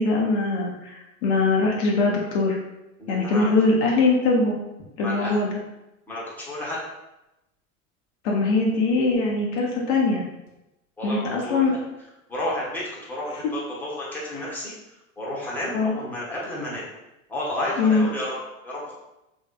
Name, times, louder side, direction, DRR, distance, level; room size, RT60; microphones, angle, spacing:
voice 1, 0.0-2.6 3.1-4.6 5.0-5.5 8.2-10.2 11.0-11.7 14.3-14.5 15.7-16.0 17.8-18.1, left 3 dB, 55° left, -2 dB, 0.7 m, -22 dB
voice 2, 3.0-3.6 5.0-5.4 6.1-6.8 11.0-11.6 12.3-14.7 15.2-16.9 17.3-18.3 18.6-18.9, left 1 dB, 5° left, -6 dB, 0.9 m, -31 dB
3.1 x 2.7 x 2.2 m, 0.95 s
hypercardioid pair, 95°, 40 cm